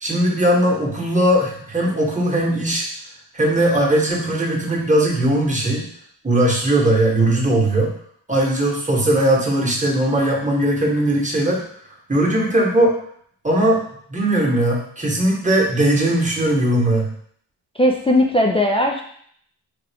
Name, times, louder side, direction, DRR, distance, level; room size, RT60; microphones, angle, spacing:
voice 1, 0.0-2.8 3.3-5.9 6.2-7.9 8.3-11.6 12.1-12.9 13.4-13.8 14.1-17.1, right 1 dB, 15° right, -2 dB, 1.1 m, -19 dB
voice 2, 17.8-19.0, left 1 dB, 15° left, 0 dB, 0.3 m, -17 dB
3.4 x 2.4 x 3.4 m, 0.63 s
cardioid pair, 60°, 44 cm